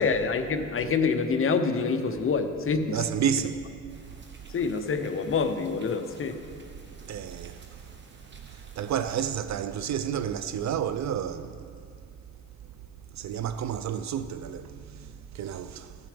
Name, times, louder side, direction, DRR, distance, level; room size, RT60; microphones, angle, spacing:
voice 1, 0.0-3.1 4.5-6.4, left 5 dB, 40° left, 0.8 m, -26 dB
voice 2, 2.9-3.6 7.1-7.7 8.5-11.7 13.1-16.0, right 8 dB, 55° right, 0.4 m, -31 dB
sound 1, 3.9-9.2, right 3 dB, 35° right, 1.2 m, -53 dB
14.5 x 7.0 x 5.0 m
cardioid pair, 120°, 33 cm